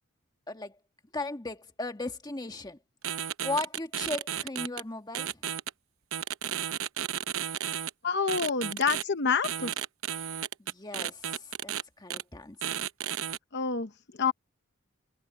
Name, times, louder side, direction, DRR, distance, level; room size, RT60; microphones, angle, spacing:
voice 1, 1.1-2.8 3.4-5.3 10.6-12.7, left 2 dB, 20° left, 1.4 m, -37 dB
sound 1, 3.0-4.8 5.1-5.7 6.1-7.9 8.3-9.0 9.4-11.8 12.1-12.2 12.6-13.4, right 10 dB, 80° right, 0.8 m, -33 dB
voice 2, 8.0-9.7 13.5-14.3, left 5 dB, 55° left, 0.9 m, -28 dB
head